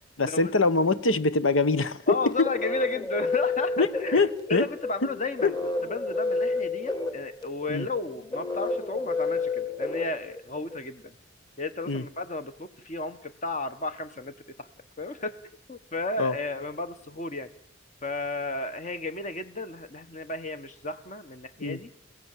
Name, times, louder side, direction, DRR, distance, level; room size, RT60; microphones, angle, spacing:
voice 1, 0.2-2.5 3.8-4.7 5.4-5.5 7.7-7.9 11.9-12.0 16.2-16.3 21.6-21.8, left 3 dB, 80° left, 14 dB, 1.2 m, -24 dB
voice 2, 2.1-5.5 5.9-11.1 11.6-14.7 15.0-15.4 15.7-17.5 18.0-21.9, left 3 dB, 40° left, 10 dB, 1.3 m, -33 dB
sound 1, 2.1-10.8, left 3 dB, 20° left, 2.3 m, -30 dB
30.0 x 16.5 x 7.5 m, 0.71 s
head